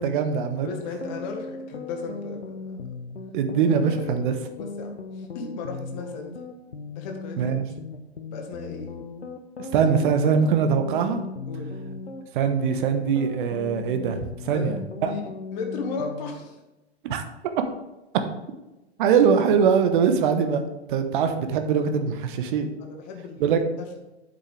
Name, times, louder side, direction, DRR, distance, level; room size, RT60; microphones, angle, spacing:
voice 1, 0.0-0.7 3.3-4.3 7.4-7.6 9.7-11.2 12.3-14.2 14.4-14.8 15.0-15.1 17.0-17.2 19.0-20.6 20.9-22.7 23.4-23.6, right 6 dB, 50° right, 7 dB, 1.2 m, -22 dB
voice 2, 0.6-2.8 4.0-4.2 4.6-6.4 6.9-7.6 8.3-8.9 11.5-11.7 14.5-14.8 15.0-16.6 22.8-24.0, left 4 dB, 45° left, 3 dB, 1.6 m, -36 dB
sound 1, 0.7-16.3, left 3 dB, 80° left, 0.9 m, -37 dB
8.7 x 7.8 x 3.4 m, 1.0 s
figure-of-eight pair, 100°, 33 cm